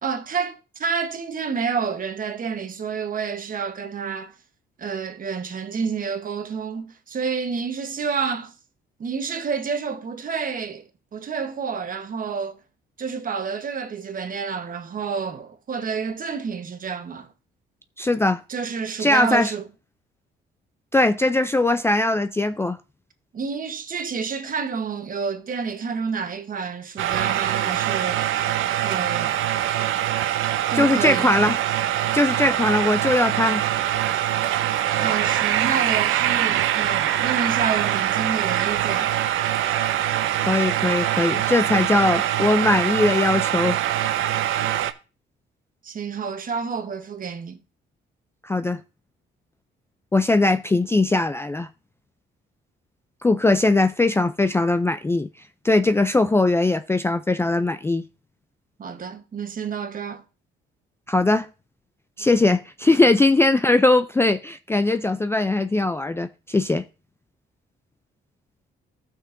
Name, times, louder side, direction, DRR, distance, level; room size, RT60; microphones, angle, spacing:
voice 1, 0.0-4.3 4.8-8.5 9.0-12.6 13.0-17.3 18.5-19.6 23.3-28.5 28.8-29.4 30.7-31.4 35.0-39.2 45.8-47.6 58.8-60.2, right 6 dB, 45° right, 1.1 m, -29 dB
voice 2, 18.0-18.4 19.0-19.5 20.9-22.8 30.7-31.6 32.1-33.6 40.5-43.8 48.4-48.8 50.1-51.7 53.2-55.3 55.6-58.0 61.1-61.5 62.2-66.8, left 2 dB, 10° left, 0.3 m, -20 dB
sound 1, 27.0-44.9, right 12 dB, 85° right, 0.5 m, -23 dB
14.5 x 6.1 x 2.6 m
cardioid pair, 90°, 20 cm